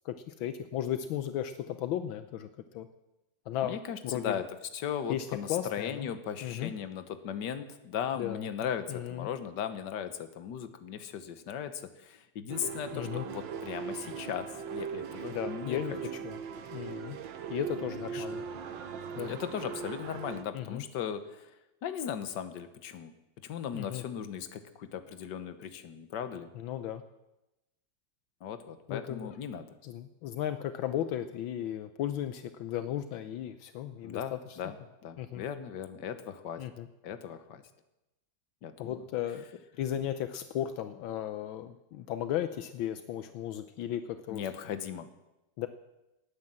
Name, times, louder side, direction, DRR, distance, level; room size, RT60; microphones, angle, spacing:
voice 1, 0.0-2.9 3.5-3.8 4.0-4.4 5.1-6.1 6.4-6.7 8.2-8.5 8.9-9.3 12.9-13.2 15.3-16.4 16.7-17.2 17.5-18.4 19.2-19.4 20.5-20.8 23.7-24.0 26.5-27.0 28.9-29.3 29.8-34.6 35.2-35.4 36.6-36.9 38.8-44.4 45.6-45.7, left 11 dB, 80° left, 10 dB, 1.5 m, -35 dB
voice 2, 3.6-4.5 4.7-15.8 18.1-18.3 19.2-21.5 21.8-23.1 23.4-26.5 28.4-29.7 34.0-34.8 35.0-36.7 37.0-37.6 38.6-39.0 44.3-45.1, left 8 dB, 65° left, 10 dB, 1.6 m, -37 dB
sound 1, 12.5-20.4, right 6 dB, 70° right, 1.7 m, -39 dB
18.5 x 9.6 x 7.5 m, 0.97 s
omnidirectional pair, 2.2 m